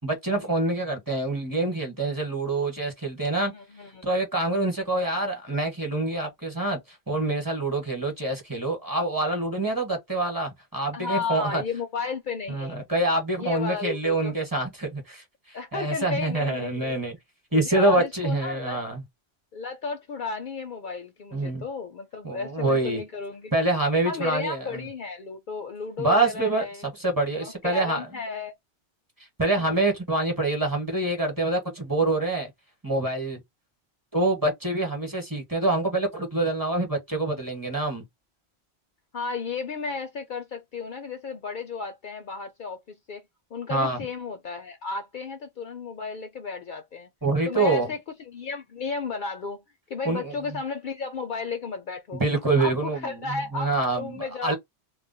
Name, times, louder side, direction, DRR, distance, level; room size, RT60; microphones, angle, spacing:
voice 1, 0.0-3.5 4.0-6.8 7.1-11.6 12.5-17.2 17.5-19.0 21.3-21.6 22.2-23.0 23.5-24.8 26.0-28.1 29.4-32.5 32.8-33.4 34.1-38.0 43.7-44.0 47.2-47.9 50.0-50.3 52.1-53.3 53.5-54.6, right 2 dB, 20° right, 1.1 m, -26 dB
voice 2, 3.4-4.1 4.4-4.7 10.9-12.8 13.3-14.3 15.5-17.0 17.5-18.8 19.5-23.5 24.1-26.9 27.4-28.5 29.6-30.0 39.1-43.2 43.5-47.1 47.5-48.0 48.3-49.6 49.9-52.2 52.6-54.5, left 4 dB, 60° left, 0.6 m, -34 dB
2.3 x 2.1 x 3.9 m
omnidirectional pair, 1.1 m